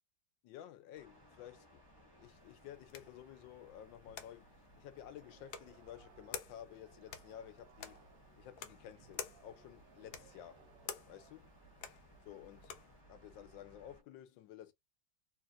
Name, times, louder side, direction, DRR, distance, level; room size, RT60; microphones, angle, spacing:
voice 1, 0.4-8.0 8.4-10.6 11.1-11.5 12.2-12.8 13.1-14.7, left 11 dB, 90° left, 1.3 m, -53 dB
sound 1, 1.0-14.0, equal, 15° left, 1.1 m, -63 dB
sound 2, 2.3-13.0, left 8 dB, 70° left, 1.0 m, -52 dB
sound 3, 5.1-11.3, right 7 dB, 80° right, 1.2 m, -66 dB
3.2 x 2.7 x 2.4 m
omnidirectional pair, 2.0 m